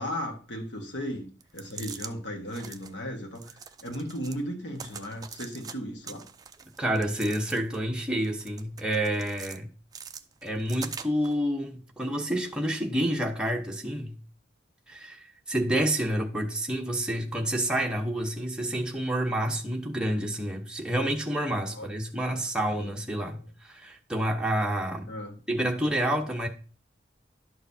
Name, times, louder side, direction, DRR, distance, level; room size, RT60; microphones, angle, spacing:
voice 1, 0.0-3.6 3.8-6.2 21.7-21.9 22.3-22.4 25.1-25.3, equal, 80° left, 1.6 m, -36 dB
sound 1, 1.4-2.1 2.5-2.9 3.3-4.4 4.7-5.7 6.0-7.8 8.2-9.6 9.9-11.3, right 6 dB, 20° right, 0.4 m, -43 dB
voice 2, 6.8-9.7 10.4-14.2 14.9-25.1 25.5-26.5, right 1 dB, 5° right, 0.9 m, -29 dB
11.5 x 6.5 x 2.8 m
head